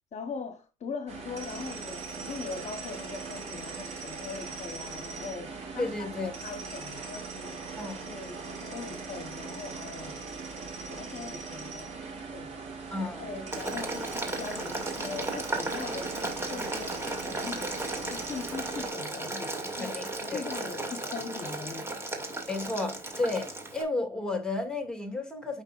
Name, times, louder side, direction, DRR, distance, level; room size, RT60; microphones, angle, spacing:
voice 1, 0.1-7.6 8.0-10.2 10.9-12.5 13.0-17.7 18.1-22.1, left 5 dB, 40° left, 1.1 m, -41 dB
sound 1, 1.1-18.9, right 4 dB, 40° right, 4.2 m, -40 dB
voice 2, 5.8-6.3 7.8-8.1 12.9-13.4 19.8-20.5 22.5-25.6, left 2 dB, 5° left, 2.2 m, -33 dB
Boiling, 13.5-23.8, right 2 dB, 15° right, 2.3 m, -35 dB
8.8 x 5.4 x 2.5 m
cardioid pair, 110°, 17 cm